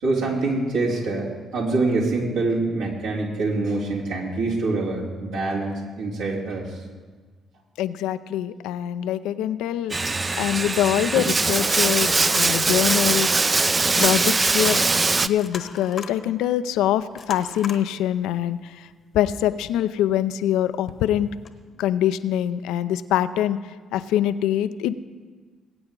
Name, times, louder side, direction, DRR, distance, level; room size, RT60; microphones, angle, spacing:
voice 1, 0.0-1.3 1.5-6.7, right 3 dB, 75° right, -5 dB, 3.5 m, -25 dB
voice 2, 7.8-13.4 14.0-18.9 19.1-21.3 21.8-23.6 23.9-24.9, left 11 dB, 70° left, 13 dB, 0.5 m, -24 dB
Bathtub (filling or washing), 9.9-15.3, right 3 dB, 30° right, 0.6 m, -21 dB
sound 1, 11.7-14.9 15.1-16.3 17.1-17.9 18.3-18.4 19.5-19.8 20.9-21.0 21.4-21.5, left 5 dB, 50° left, 1.1 m, -39 dB
21.0 x 8.7 x 3.8 m, 1.4 s
hypercardioid pair, 45°, 0 cm